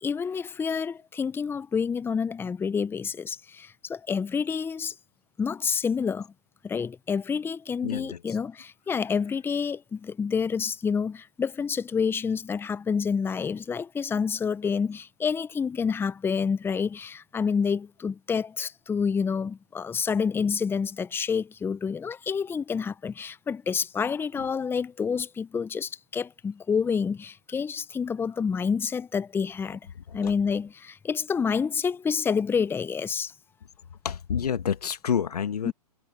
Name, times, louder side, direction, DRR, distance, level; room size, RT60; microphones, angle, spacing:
voice 1, 0.0-4.9 5.4-6.3 6.6-29.8 30.1-33.3 35.6-35.7, left 6 dB, 10° left, 1.0 m, -28 dB
voice 2, 7.8-8.4 30.1-30.3 34.0-35.7, left 7 dB, 75° left, 1.9 m, -29 dB
hypercardioid pair, 120°, 20 cm